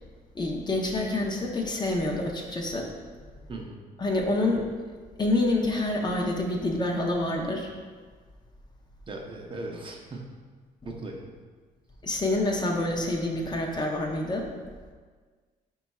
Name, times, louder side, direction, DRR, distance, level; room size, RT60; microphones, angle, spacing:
voice 1, 0.3-2.9 4.0-4.7 5.2-7.7 10.8-10.9 12.0-14.5, left 2 dB, 30° left, 0 dB, 0.6 m, -27 dB
voice 2, 9.1-10.3 10.8-11.3, right 2 dB, 35° right, 0 dB, 0.6 m, -38 dB
5.3 x 2.3 x 4.1 m, 1.5 s
cardioid pair, 115°, 16 cm